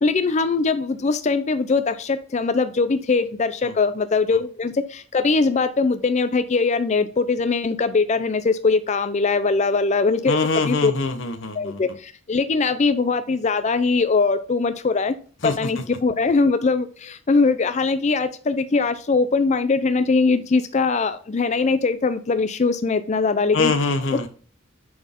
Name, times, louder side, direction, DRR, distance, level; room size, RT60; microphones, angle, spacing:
voice 1, 0.0-10.4 10.6-10.9 11.5-15.2 15.4-23.7, left 4 dB, 35° left, 11 dB, 0.4 m, -21 dB
voice 2, 10.3-11.8 15.4-15.5 23.5-24.3, left 3 dB, 60° left, 8 dB, 0.9 m, -23 dB
9.3 x 4.2 x 3.6 m, 0.41 s
head